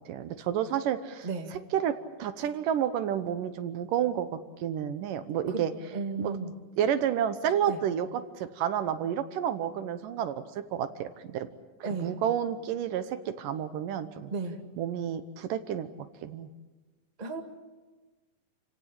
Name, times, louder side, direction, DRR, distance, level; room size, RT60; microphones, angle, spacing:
voice 1, 0.1-1.9 2.2-5.7 6.2-6.4 6.8-11.5 11.8-14.3 14.8-16.5, right 9 dB, 75° right, 11 dB, 2.6 m, -30 dB
voice 2, 1.2-1.6 5.5-5.7 5.9-6.5 7.7-7.8 11.8-12.1 14.3-14.6 17.2-17.4, right 3 dB, 15° right, 4 dB, 1.6 m, -34 dB
29.5 x 16.5 x 8.8 m, 1.3 s
omnidirectional pair, 4.0 m